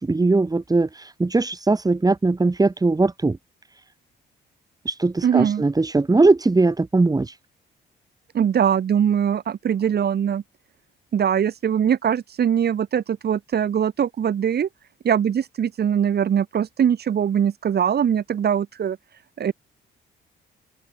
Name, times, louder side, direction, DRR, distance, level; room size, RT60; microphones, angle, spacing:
voice 1, 0.0-3.4 4.9-7.4, right 3 dB, 20° right, 2.0 m, -20 dB
voice 2, 5.2-5.6 8.3-10.4 11.1-14.7 15.0-19.0 19.4-19.5, right 8 dB, 55° right, 2.3 m, -21 dB
cardioid pair, 90°, 20 cm